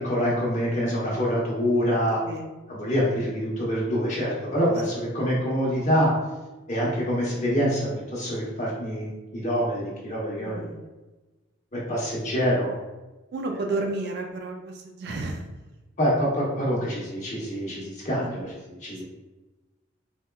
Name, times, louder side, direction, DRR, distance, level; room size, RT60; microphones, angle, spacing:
voice 1, 0.0-2.2 2.7-6.1 6.7-10.7 11.7-12.7 16.0-19.0, equal, 35° left, -5 dB, 0.9 m, -26 dB
voice 2, 10.4-10.9 13.3-15.4, right 2 dB, 55° right, 3 dB, 0.4 m, -32 dB
4.3 x 2.2 x 2.2 m, 1.1 s
head